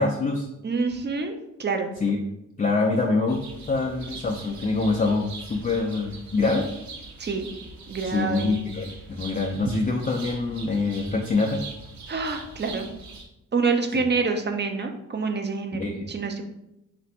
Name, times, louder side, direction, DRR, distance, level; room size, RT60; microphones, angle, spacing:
voice 1, 0.0-0.5 2.0-2.2 2.6-3.4 3.7-6.7 8.0-11.6 13.9-14.0 15.7-16.0, left 3 dB, 25° left, 0 dB, 0.5 m, -25 dB
voice 2, 0.6-1.9 7.2-7.5 7.9-8.5 12.1-12.9 13.5-16.4, right 4 dB, 30° right, 5 dB, 0.7 m, -27 dB
sound 1, 3.3-13.2, right 3 dB, 50° right, 1.0 m, -42 dB
3.2 x 2.6 x 4.2 m, 0.88 s
supercardioid pair, 55°, 36 cm